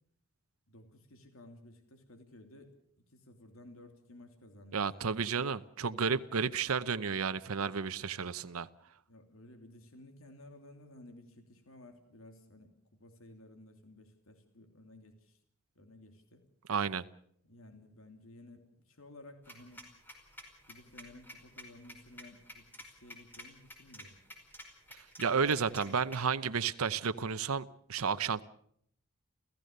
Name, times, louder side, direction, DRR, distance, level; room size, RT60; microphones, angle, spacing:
voice 1, 0.7-2.8 3.1-5.1 9.1-15.4 15.7-16.4 17.4-19.9 20.7-24.2 25.4-26.0, left 1 dB, 70° left, 6 dB, 2.9 m, -55 dB
voice 2, 4.7-8.7 16.7-17.0 24.9-28.4, right 5 dB, 80° right, 13 dB, 0.8 m, -32 dB
sound 1, 19.4-26.2, left 1 dB, 10° left, 4.9 m, -50 dB
29.5 x 15.5 x 6.6 m, 0.67 s
head